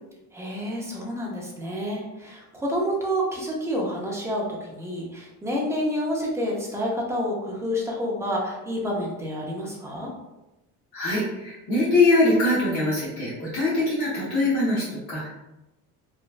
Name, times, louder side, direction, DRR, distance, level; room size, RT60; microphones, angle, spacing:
voice 1, 0.3-10.1, equal, 10° right, -3 dB, 0.4 m, -29 dB
voice 2, 10.9-15.3, left 2 dB, 50° left, -9 dB, 1.1 m, -23 dB
3.0 x 2.2 x 2.4 m, 0.99 s
cardioid pair, 155°, 36 cm